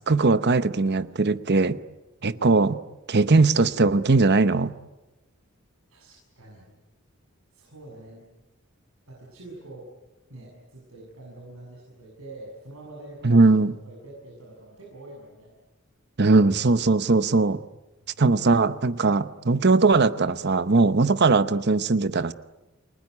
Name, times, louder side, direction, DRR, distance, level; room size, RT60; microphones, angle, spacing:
voice 1, 0.0-1.8 2.2-2.8 3.1-4.7 13.2-13.7 16.2-17.6 18.2-22.3, right 3 dB, 55° right, 13 dB, 0.9 m, -20 dB
voice 2, 5.9-6.7 7.5-8.3 9.0-9.9 10.3-13.5 13.8-15.5 18.1-18.2, right 2 dB, 85° right, -3 dB, 7.1 m, -45 dB
30.0 x 20.0 x 9.5 m, 1.1 s
head